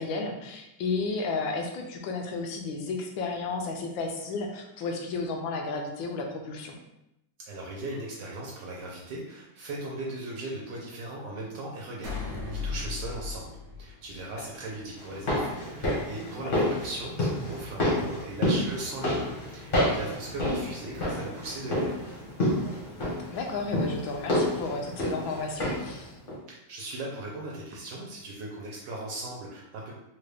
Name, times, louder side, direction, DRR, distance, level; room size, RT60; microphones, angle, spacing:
voice 1, 0.0-6.8 14.4-14.5 16.3-16.5 21.0-21.2 23.3-26.1, left 3 dB, 85° left, 2 dB, 1.4 m, -33 dB
voice 2, 7.5-12.2 12.5-22.0 26.5-29.9, right 2 dB, 70° right, -3 dB, 1.3 m, -38 dB
sound 1, 12.0-14.6, left 4 dB, 55° right, 0.6 m, -36 dB
sound 2, 15.0-26.0 26.3-26.4, left 1 dB, 40° left, 0.7 m, -29 dB
3.8 x 2.3 x 3.3 m, 0.86 s
omnidirectional pair, 2.1 m